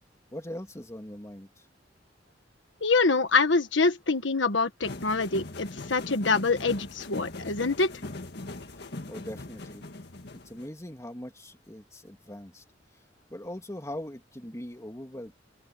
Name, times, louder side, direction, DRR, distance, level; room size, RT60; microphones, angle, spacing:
voice 1, 0.3-1.6 9.1-9.9 10.3-12.6 13.3-15.3, left 1 dB, 15° left, 2.9 m, -41 dB
voice 2, 2.8-7.9, left 3 dB, 80° left, 1.5 m, -25 dB
sound 1, 4.8-10.7, left 2 dB, 60° left, 1.8 m, -40 dB
open air
head